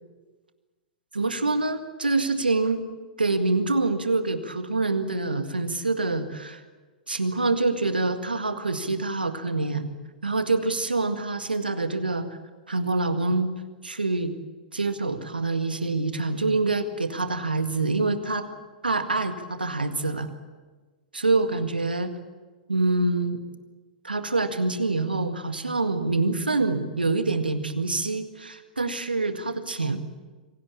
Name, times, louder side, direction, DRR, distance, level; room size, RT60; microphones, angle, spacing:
voice 1, 1.1-2.8 3.2-6.6 7.1-9.9 10.2-12.3 12.7-13.5 13.8-14.3 14.7-18.5 18.8-20.3 21.1-22.1 22.7-23.4 24.0-30.0, right 3 dB, 85° right, 9 dB, 1.9 m, -26 dB
25.5 x 17.5 x 8.7 m, 1.3 s
figure-of-eight pair, 105°, 5 cm